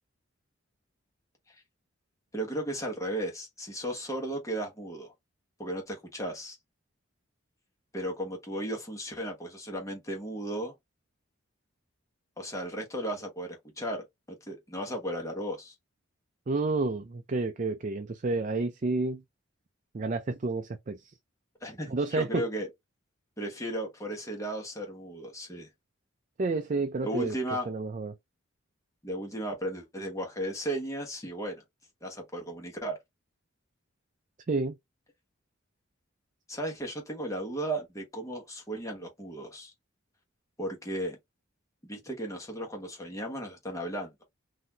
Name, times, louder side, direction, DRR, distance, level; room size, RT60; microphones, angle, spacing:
voice 1, 2.3-5.1 5.6-6.6 7.9-10.7 12.4-15.7 21.6-22.7 23.4-25.7 27.0-27.7 29.0-31.6 32.0-33.0 36.5-39.7 40.6-41.2 41.8-44.1, right 1 dB, 15° left, 1.2 m, -35 dB
voice 2, 16.5-19.2 19.9-21.1 21.9-22.5 26.4-27.3 27.7-28.2 34.5-34.8, right 3 dB, 40° right, 0.4 m, -30 dB
4.0 x 2.7 x 2.8 m
head